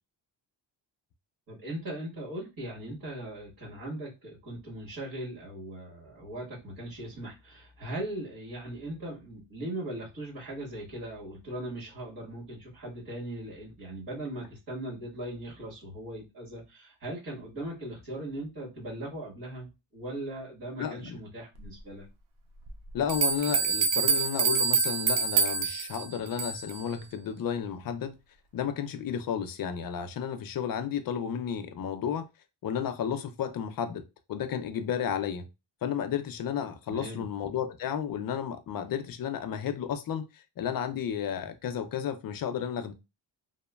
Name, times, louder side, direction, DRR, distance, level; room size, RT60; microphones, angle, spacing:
voice 1, 1.5-22.0 36.9-37.2, right 1 dB, 50° right, 1.6 m, -39 dB
voice 2, 20.8-21.2 22.9-28.2 28.5-32.3 32.6-34.0 34.3-35.5 35.8-42.9, left 8 dB, 50° left, 0.5 m, -32 dB
sound 1, 22.7-22.8 23.1-26.8, right 5 dB, 90° right, 0.7 m, -26 dB
2.9 x 2.1 x 2.2 m
cardioid pair, 110°, 46 cm